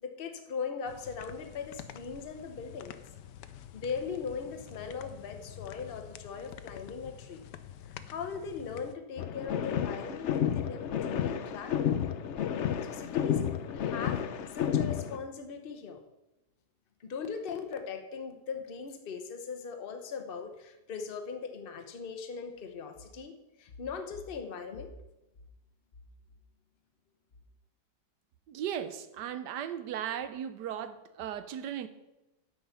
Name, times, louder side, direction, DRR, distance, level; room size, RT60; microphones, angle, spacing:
voice 1, 0.0-3.0 3.7-7.4 7.8-12.1 12.8-14.2 14.5-16.0 17.0-24.9, left 5 dB, 40° left, 6 dB, 1.0 m, -39 dB
sound 1, 0.9-9.0, left 10 dB, 85° left, 1.3 m, -48 dB
sound 2, 9.2-15.2, left 9 dB, 65° left, 0.7 m, -31 dB
voice 2, 28.5-31.9, right 9 dB, 80° right, 11 dB, 1.4 m, -36 dB
9.3 x 8.8 x 5.7 m, 0.99 s
omnidirectional pair, 1.8 m